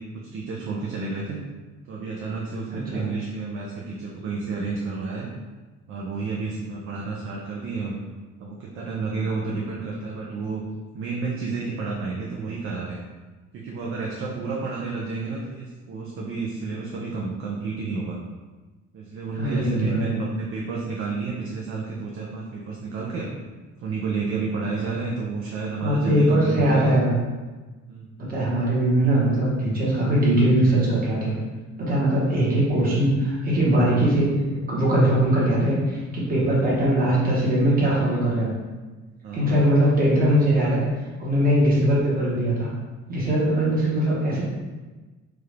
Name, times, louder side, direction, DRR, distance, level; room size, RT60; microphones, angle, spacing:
voice 1, 0.0-1.4 1.9-5.3 5.9-8.0 8.4-10.6 10.9-13.0 13.5-18.2 18.9-23.3 23.8-27.0 27.9-28.2 36.5-36.7 39.2-39.6, right 4 dB, 45° right, -2 dB, 0.5 m, -30 dB
voice 2, 2.7-3.1 19.4-20.1 25.8-27.1 28.2-31.3 31.8-34.3 34.7-38.5 39.3-40.8 41.2-42.7 43.1-44.4, right 1 dB, 30° right, -6 dB, 1.2 m, -21 dB
4.7 x 2.5 x 3.2 m, 1.3 s
cardioid pair, 170°, 30 cm